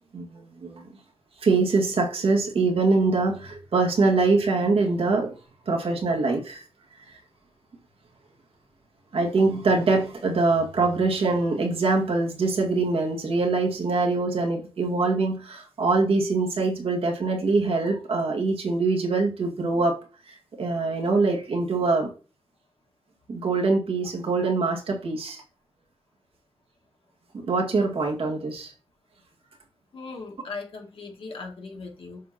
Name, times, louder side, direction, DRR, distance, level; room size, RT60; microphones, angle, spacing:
voice 1, 0.1-0.8 1.4-5.3 5.7-6.6 7.1-7.2 9.1-20.0 20.3-22.1 23.3-25.4 27.3-28.7, right 3 dB, 80° right, 1.9 m, -24 dB
voice 2, 29.9-32.2, left 4 dB, 70° left, 2.3 m, -38 dB
7.5 x 5.6 x 2.9 m
cardioid pair, 60°, 9 cm